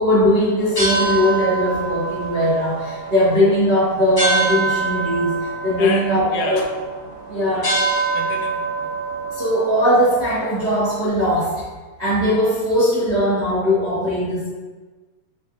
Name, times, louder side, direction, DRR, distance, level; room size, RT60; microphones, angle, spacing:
voice 1, 0.0-6.7 7.3-7.7 9.3-11.5 12.0-14.5, equal, 80° right, -11 dB, 0.5 m, -19 dB
sound 1, 0.6-11.1, right 3 dB, 45° left, 0.8 m, -26 dB
voice 2, 5.8-6.7 7.4-7.8 8.1-8.9, left 4 dB, 80° left, 2 dB, 1.8 m, -30 dB
6.8 x 2.4 x 2.9 m, 1.3 s
omnidirectional pair, 3.3 m